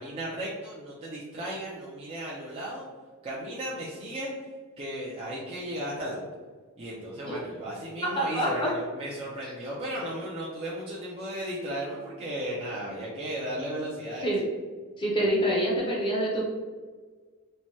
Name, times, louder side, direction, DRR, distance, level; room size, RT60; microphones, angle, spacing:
voice 1, 0.0-2.8 3.2-4.3 4.8-6.2 6.8-14.3, right 1 dB, 25° right, -6 dB, 0.4 m, -35 dB
voice 2, 8.0-8.7 9.4-9.5 14.2-14.4 15.0-16.4, equal, 20° left, -4 dB, 0.6 m, -26 dB
3.1 x 2.2 x 2.6 m, 1.5 s
head